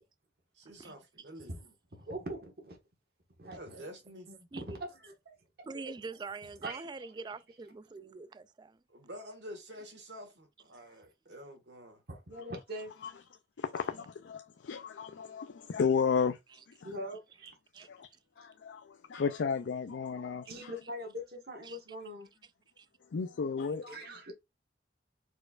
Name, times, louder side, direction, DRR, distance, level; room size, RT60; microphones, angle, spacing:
voice 1, 0.5-1.6 3.5-4.3 8.9-12.0, equal, 80° right, 1.7 m, -48 dB
voice 2, 1.5-2.8 3.4-3.8 4.3-5.1 5.8-5.9 6.6-7.1 12.1-12.9 16.8-17.5 20.5-22.3 23.9-24.3, equal, 60° right, 1.4 m, -42 dB
voice 3, 5.6-8.8 17.7-17.9 21.6-21.8 22.8-22.9, right 4 dB, 25° right, 0.3 m, -44 dB
voice 4, 13.6-16.4 16.8-16.9 17.9-18.1 18.4-20.7 23.1-24.0, left 6 dB, 85° left, 0.4 m, -33 dB
4.5 x 4.3 x 2.4 m
head